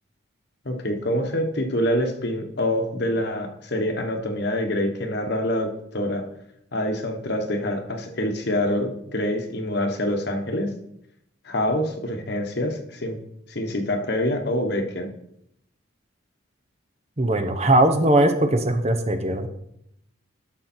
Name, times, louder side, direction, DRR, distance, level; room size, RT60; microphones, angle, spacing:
voice 1, 0.6-6.3 6.7-10.7 11.4-13.2 13.5-15.1, left 1 dB, 55° left, 5 dB, 1.3 m, -26 dB
voice 2, 17.2-19.5, right 1 dB, 30° right, 7 dB, 0.9 m, -20 dB
12.0 x 6.5 x 4.4 m, 0.76 s
head